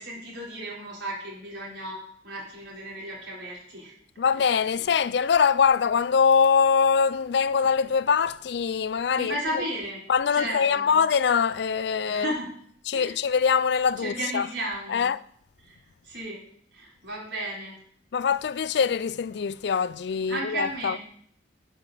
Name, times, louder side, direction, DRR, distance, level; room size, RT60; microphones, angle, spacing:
voice 1, 0.0-3.9 9.1-10.0 10.3-10.9 12.1-12.5 12.9-13.1 14.0-15.0 15.6-15.8 16.0-16.4 16.7-17.8 20.3-21.0, right 1 dB, 65° right, 4.1 m, -34 dB
voice 2, 4.2-9.4 10.1-12.3 12.9-14.5 14.9-15.2 18.1-21.0, left 6 dB, 65° left, 0.4 m, -23 dB
8.8 x 5.9 x 7.5 m
head